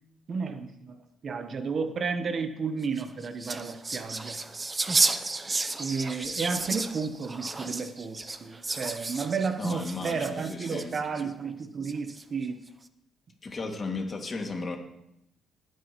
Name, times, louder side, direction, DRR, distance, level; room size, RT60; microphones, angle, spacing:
voice 1, 0.3-4.4 5.8-12.6, right 5 dB, 50° right, 9 dB, 1.0 m, -32 dB
sound 1, 2.8-11.2 11.8-12.4, right 3 dB, 25° right, 0.7 m, -32 dB
voice 2, 9.6-11.0 13.4-14.8, left 3 dB, 35° left, 2 dB, 2.2 m, -35 dB
18.5 x 9.3 x 3.1 m, 0.80 s
cardioid pair, 90°, 0 cm